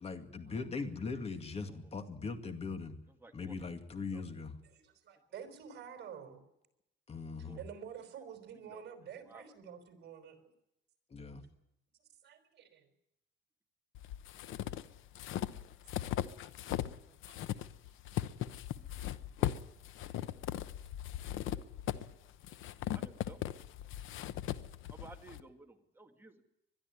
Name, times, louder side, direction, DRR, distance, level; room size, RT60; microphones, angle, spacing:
voice 1, 0.0-3.0 3.3-4.5 7.1-7.6 11.1-11.4, left 4 dB, 30° left, 8 dB, 2.3 m, -40 dB
voice 2, 3.2-3.5 4.0-4.2 7.5-7.6 8.7-8.8 9.3-9.5 17.0-17.2 19.4-19.6 21.5-21.6 22.9-23.4 24.9-26.4, right 3 dB, 10° right, 3 dB, 2.3 m, -55 dB
voice 3, 4.7-6.4 7.6-10.5 12.2-12.9 17.3-17.4, right 8 dB, 55° right, 6 dB, 4.7 m, -49 dB
sound 1, 13.9-17.0 17.2-25.4, left 12 dB, 80° left, 1.0 m, -38 dB
21.5 x 12.5 x 9.8 m, 0.85 s
cardioid pair, 135°, 20 cm